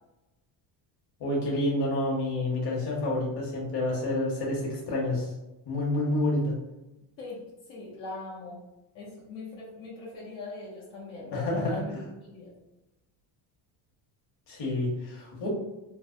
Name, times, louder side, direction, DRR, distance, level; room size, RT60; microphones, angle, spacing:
voice 1, 1.2-5.3 5.6-6.6 11.3-12.1 14.5-15.5, left 1 dB, 60° left, -3 dB, 1.3 m, -29 dB
voice 2, 7.7-8.6 8.9-11.9 12.2-12.5, left 3 dB, 85° left, -6 dB, 1.0 m, -40 dB
3.2 x 2.1 x 2.6 m, 0.98 s
cardioid pair, 100°, 46 cm